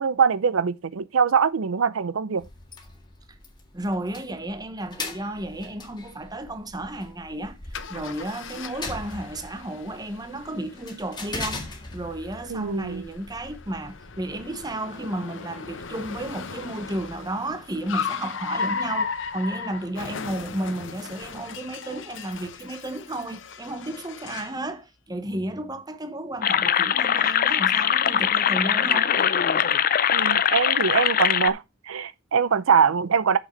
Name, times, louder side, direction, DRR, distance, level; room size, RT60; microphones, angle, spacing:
voice 1, 0.0-2.4 12.5-13.0 30.1-33.4, right 6 dB, 85° right, 0.5 m, -23 dB
sound 1, 2.4-14.8, left 3 dB, 20° left, 1.8 m, -41 dB
voice 2, 3.7-7.6 7.9-29.3, right 1 dB, 20° right, 1.0 m, -33 dB
Car, 7.7-24.6, left 5 dB, 65° left, 0.9 m, -36 dB
sound 2, 26.4-31.5, left 9 dB, 45° left, 0.5 m, -21 dB
6.8 x 6.1 x 5.1 m
head